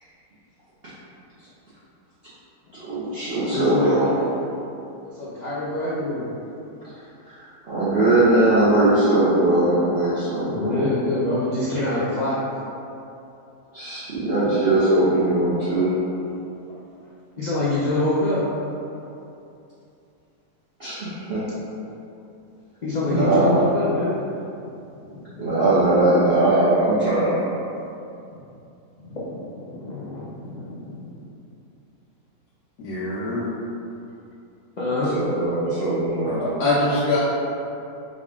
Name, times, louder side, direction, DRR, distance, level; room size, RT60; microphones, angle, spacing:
voice 1, 2.7-4.1 7.3-10.8 13.7-15.9 20.8-21.4 23.0-23.6 25.4-27.4 35.1-36.4, right 2 dB, 50° right, -12 dB, 0.9 m, -20 dB
voice 2, 3.5-4.4 5.1-6.3 10.5-12.4 17.4-18.4 22.8-24.1 24.9-25.5 29.0-31.1 34.8-35.2, left 2 dB, 65° left, -9 dB, 0.4 m, -25 dB
voice 3, 32.8-33.5 36.2-37.2, left 2 dB, 90° left, -7 dB, 1.2 m, -23 dB
5.0 x 2.4 x 3.5 m, 2.7 s
omnidirectional pair, 1.6 m